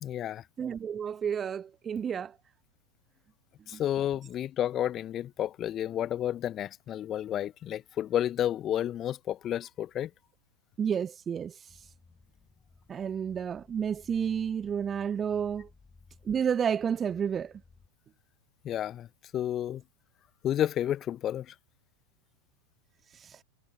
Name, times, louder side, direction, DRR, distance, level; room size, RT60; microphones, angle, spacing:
voice 1, 0.0-0.4 3.7-10.1 18.6-19.1 19.3-19.8 20.4-21.5, left 11 dB, 30° left, 0.5 m, -31 dB
voice 2, 0.6-2.3 3.7-3.8 10.8-11.5 12.9-15.7 16.3-17.5, right 7 dB, 20° right, 0.4 m, -30 dB
sound 1, 11.7-17.9, left 4 dB, 15° left, 5.3 m, -59 dB
figure-of-eight pair, 90°, 0 cm